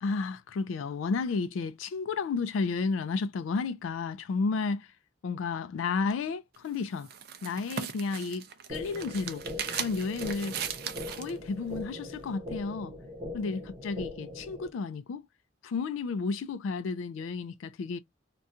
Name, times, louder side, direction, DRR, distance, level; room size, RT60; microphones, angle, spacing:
voice 1, 0.0-4.9 5.2-7.1 7.4-8.4 8.7-9.4 9.7-10.6 11.1-12.9 13.3-15.2 15.6-18.0, left 4 dB, 85° left, 0.3 m, -32 dB
sound 1, 6.5-11.4, right 7 dB, 50° right, 0.4 m, -38 dB
sound 2, 8.7-14.7, left 2 dB, 30° right, 0.8 m, -41 dB
2.4 x 2.2 x 2.6 m
head